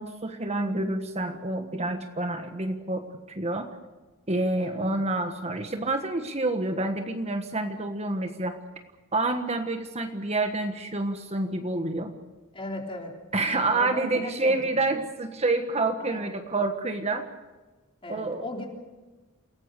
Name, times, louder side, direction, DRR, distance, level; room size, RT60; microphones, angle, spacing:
voice 1, 0.0-3.7 4.3-8.6 9.1-12.1 13.3-17.3 18.1-18.4, right 2 dB, 30° right, 6 dB, 1.4 m, -28 dB
voice 2, 4.6-5.0 12.5-14.9 16.0-16.3 18.0-18.7, left 2 dB, 25° left, 2 dB, 3.8 m, -38 dB
28.5 x 17.5 x 6.8 m, 1.2 s
head